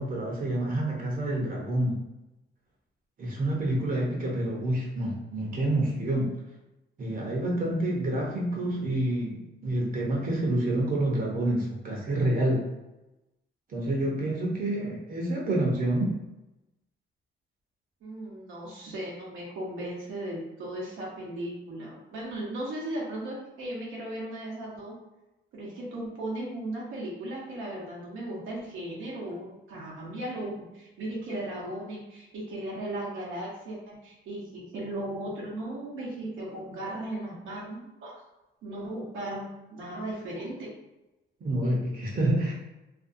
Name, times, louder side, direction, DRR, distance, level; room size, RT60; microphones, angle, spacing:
voice 1, 0.0-2.0 3.2-6.3 7.0-12.7 13.7-16.1 41.4-42.5, right 1 dB, 45° right, -2 dB, 0.7 m, -28 dB
voice 2, 18.0-25.0 25.5-38.2 38.6-40.7, right 1 dB, 85° right, -4 dB, 0.8 m, -36 dB
2.6 x 2.2 x 2.6 m, 0.99 s
cardioid pair, 90°, 20 cm